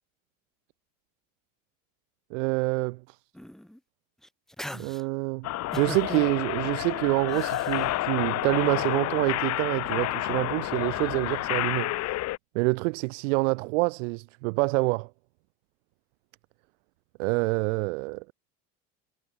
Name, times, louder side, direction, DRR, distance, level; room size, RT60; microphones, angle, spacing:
voice 1, 2.3-3.2 4.7-5.5 5.8-11.9 12.5-15.1 17.2-18.3, right 28 dB, 85° right, 0.7 m, -27 dB
sound 1, 3.3-3.8 4.2-5.0 5.7-6.3 7.3-7.9, equal, ahead, 1.3 m, -40 dB
sound 2, 5.4-12.4, left 16 dB, 45° left, 2.7 m, -30 dB
cardioid pair, 150°, 36 cm